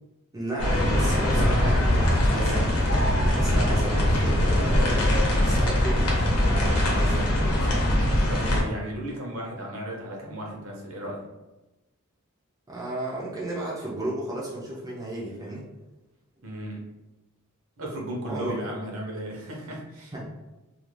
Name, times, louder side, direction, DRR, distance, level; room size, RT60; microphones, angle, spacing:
voice 1, 0.3-4.9 5.4-6.1 6.5-7.8 12.7-15.7 18.2-18.6 20.1-20.3, right 1 dB, 15° right, -5 dB, 0.4 m, -34 dB
sound 1, 0.6-8.6, left 1 dB, 85° left, 0.8 m, -22 dB
voice 2, 8.3-11.2 16.4-16.9 17.8-20.1, right 1 dB, 65° right, -1 dB, 0.7 m, -35 dB
2.4 x 2.3 x 3.1 m, 1.0 s
head